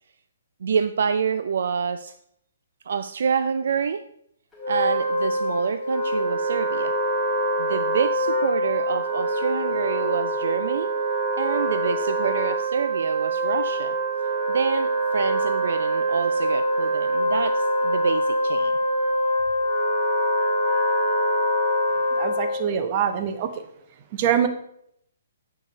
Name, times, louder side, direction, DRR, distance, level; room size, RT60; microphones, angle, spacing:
voice 1, 0.6-2.1 2.9-4.1 4.7-7.0 7.6-10.9 11.3-14.0 14.5-18.8, right 6 dB, 65° right, 11 dB, 0.3 m, -27 dB
Wind instrument woodwind instrument, 4.5-22.7, right 1 dB, 5° left, 2.4 m, -24 dB
voice 2, 22.2-23.5 24.1-24.5, right 8 dB, 40° right, 8 dB, 1.0 m, -24 dB
6.5 x 5.4 x 5.2 m, 0.73 s
hypercardioid pair, 130°, 0 cm